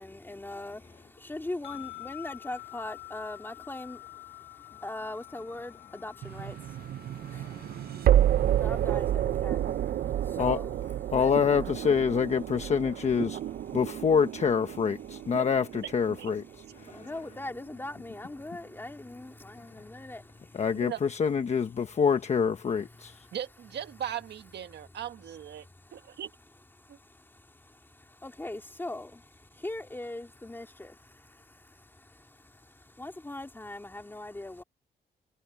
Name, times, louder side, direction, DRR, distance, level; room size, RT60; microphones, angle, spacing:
voice 1, 0.0-10.8 11.1-11.3 13.7-13.8 16.7-20.6 22.9-23.4 24.7-25.0 25.6-26.2 26.8-34.6, left 2 dB, 10° left, 2.5 m, -42 dB
sound 1, 1.6-10.9, left 26 dB, 75° left, 1.9 m, -49 dB
sound 2, 6.2-17.2, right 11 dB, 60° right, 0.5 m, -30 dB
voice 2, 7.2-8.1 9.6-9.7 10.4-10.6 11.1-13.4 13.7-16.4 16.8-17.1 20.5-23.3, left 6 dB, 40° left, 1.1 m, -27 dB
voice 3, 23.3-26.3 26.9-27.0, right 10 dB, 75° right, 1.6 m, -38 dB
wide cardioid pair, 145°, 17 cm